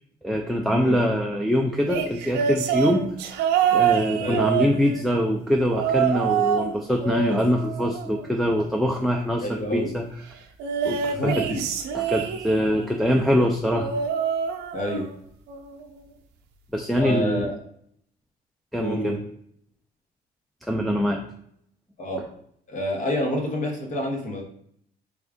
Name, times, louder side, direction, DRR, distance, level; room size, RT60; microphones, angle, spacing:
voice 1, 0.2-3.1 3.7-10.1 10.8-11.5 11.9-13.9 16.7-17.5 18.7-19.2 20.7-21.2, equal, ahead, 1 dB, 0.3 m, -23 dB
sound 1, 1.9-5.2 5.7-6.7 7.0-8.5 10.6-12.8 13.7-15.2 15.5-15.9 17.0-17.1, right 8 dB, 85° right, 0.5 m, -26 dB
voice 2, 9.4-9.9 11.1-11.6 14.7-15.1 17.0-17.5 18.8-19.2 22.0-22.2 22.7-24.4, left 1 dB, 45° left, 1 dB, 0.9 m, -28 dB
3.5 x 2.3 x 3.5 m, 0.69 s
cardioid pair, 110°, 17 cm